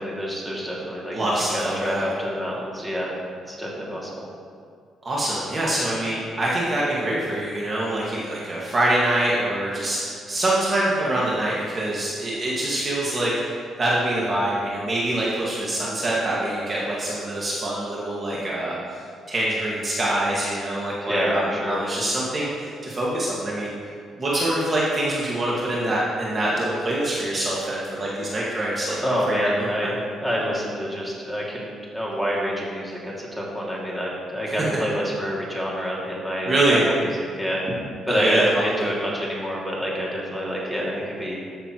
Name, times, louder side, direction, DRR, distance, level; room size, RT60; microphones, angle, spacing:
voice 1, 0.0-1.2 1.5-3.2 3.5-4.1 21.0-21.8 29.0-29.9 30.2-31.6 31.9-37.8 38.0-38.6 38.8-41.4, equal, 10° right, -5 dB, 2.3 m, -27 dB
voice 2, 1.1-2.0 5.0-19.0 19.3-23.7 24.2-29.0 29.3-30.0 36.4-36.8 38.1-38.6, right 1 dB, 35° right, -6 dB, 1.7 m, -25 dB
13.5 x 6.7 x 3.0 m, 2.1 s
cardioid pair, 90°, 0 cm